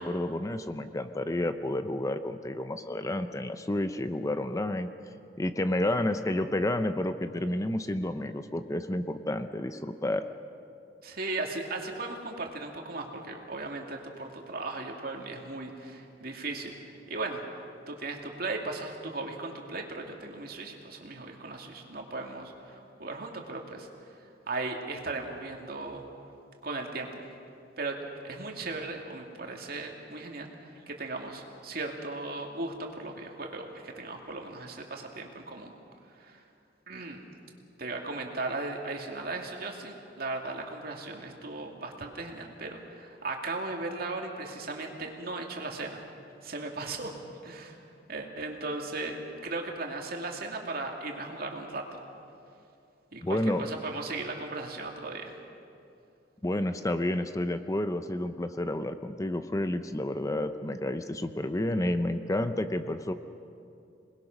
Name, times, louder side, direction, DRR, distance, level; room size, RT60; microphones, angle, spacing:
voice 1, 0.0-4.9 5.4-10.3 53.2-53.7 56.4-63.1, left 1 dB, 20° left, 10 dB, 0.6 m, -30 dB
voice 2, 11.0-16.8 17.1-23.9 24.5-26.0 26.6-27.2 27.8-28.0 28.2-35.7 36.2-36.4 36.9-37.2 37.8-46.0 46.4-47.1 47.4-47.8 48.1-49.2 49.4-52.0 53.1-55.3, right 3 dB, 55° right, 1 dB, 2.5 m, -37 dB
27.0 x 20.5 x 6.1 m, 2.6 s
head